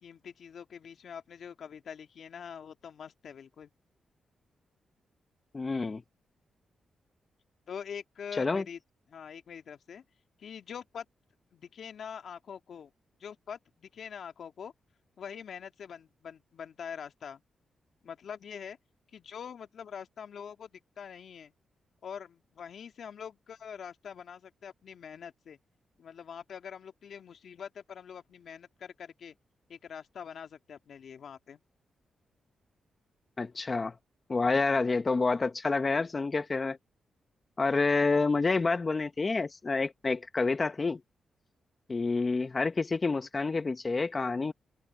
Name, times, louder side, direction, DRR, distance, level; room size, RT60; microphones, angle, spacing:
voice 1, 0.0-3.7 7.7-8.8 9.1-10.0 10.4-11.1 11.5-12.9 13.2-14.7 15.2-17.4 18.0-18.8 19.1-21.5 22.0-25.6 26.0-29.4 29.7-31.6, left 7 dB, 70° left, 1.9 m, -44 dB
voice 2, 5.5-6.0 8.4-8.6 33.4-33.9 34.3-36.8 37.6-41.0 41.9-44.5, left 3 dB, 35° left, 1.2 m, -28 dB
cardioid pair, 60°, 0 cm